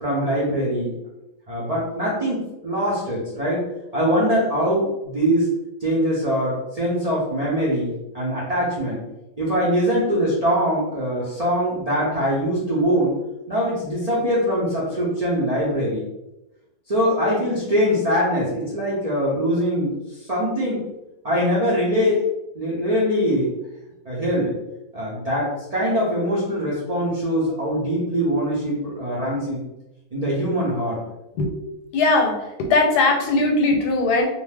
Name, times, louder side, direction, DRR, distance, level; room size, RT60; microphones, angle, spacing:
voice 1, 0.0-0.9 1.5-3.7 3.9-5.5 5.8-9.0 9.4-13.1 13.5-16.0 16.9-19.9 20.2-20.8 21.2-22.2 22.5-23.5 24.1-24.5 24.9-29.6 30.1-31.0, equal, 65° right, -7 dB, 0.3 m, -22 dB
voice 2, 31.9-32.3 32.6-34.3, left 3 dB, 85° left, 2 dB, 1.1 m, -19 dB
2.6 x 2.2 x 3.3 m, 0.96 s
omnidirectional pair, 1.7 m